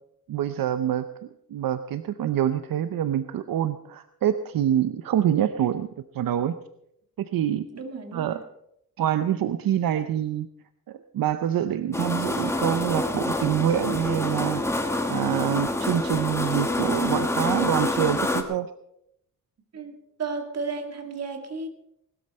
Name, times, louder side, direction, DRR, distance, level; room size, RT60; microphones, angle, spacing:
voice 1, 0.3-1.0 1.5-5.9 6.1-6.6 7.2-7.7 8.1-8.4 9.0-10.5 10.9-14.6 15.1-18.7, right 10 dB, 80° right, 10 dB, 0.8 m, -26 dB
voice 2, 7.7-8.4 19.7-21.7, right 4 dB, 45° right, 4 dB, 2.4 m, -33 dB
sound 1, 11.9-18.4, left 1 dB, 10° left, 1.5 m, -27 dB
19.5 x 13.0 x 4.3 m, 0.76 s
wide cardioid pair, 130°, 34 cm